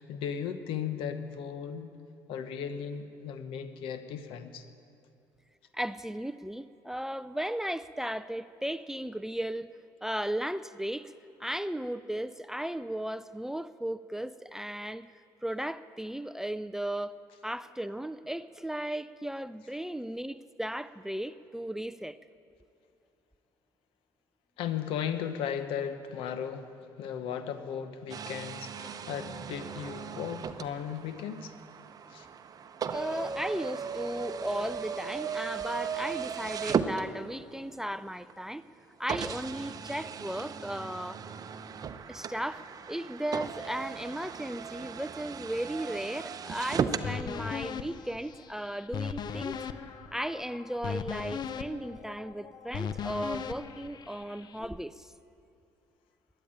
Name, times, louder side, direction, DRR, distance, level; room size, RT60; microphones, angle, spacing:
voice 1, 0.0-1.9 2.3-4.6 24.6-26.7 27.0-31.6 32.1-32.3, left 8 dB, 70° left, 10 dB, 1.0 m, -36 dB
voice 2, 5.7-9.7 10.0-11.1 11.4-15.1 15.4-17.2 17.4-22.2 32.9-38.6 39.0-41.2 42.1-49.6 50.1-55.1, right 1 dB, 5° right, 13 dB, 0.4 m, -36 dB
sound 1, 28.1-37.6 38.3-38.4 39.1-47.1, right 7 dB, 40° right, 0.8 m, -36 dB
sound 2, 47.0-54.6, left 7 dB, 50° left, 0.7 m, -38 dB
12.5 x 10.0 x 8.7 m, 2.6 s
supercardioid pair, 80°, 9 cm